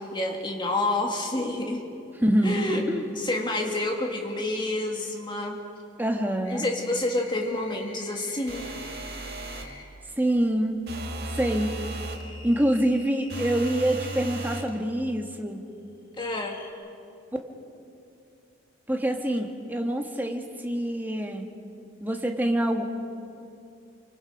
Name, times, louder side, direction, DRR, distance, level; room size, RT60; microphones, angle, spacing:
voice 1, 0.0-1.8 2.4-2.9 3.2-5.6 6.5-8.7 16.2-16.6, left 2 dB, 25° left, 1 dB, 2.4 m, -28 dB
voice 2, 2.2-2.6 2.9-3.1 6.0-6.6 10.2-10.8 11.4-11.7 12.4-15.6 18.9-21.5 22.0-22.8, right 1 dB, 10° right, 3 dB, 1.6 m, -25 dB
sound 1, 6.4-9.9 11.4-14.7 16.2-16.7, left 2 dB, 90° left, 3.0 m, -47 dB
sound 2, 8.5-9.8 10.9-12.3 13.3-14.7, right 2 dB, 55° right, 2.1 m, -35 dB
28.5 x 24.5 x 5.2 m, 2.5 s
head